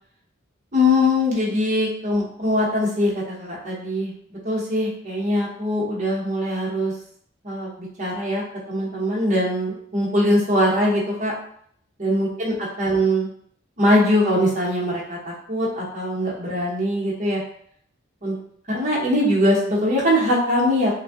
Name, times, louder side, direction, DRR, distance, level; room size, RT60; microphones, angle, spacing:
voice 1, 0.7-6.9 7.4-11.3 12.0-13.3 13.8-17.4 18.2-18.4 18.7-20.9, left 1 dB, 40° right, -5 dB, 0.9 m, -22 dB
2.6 x 2.2 x 3.5 m, 0.65 s
head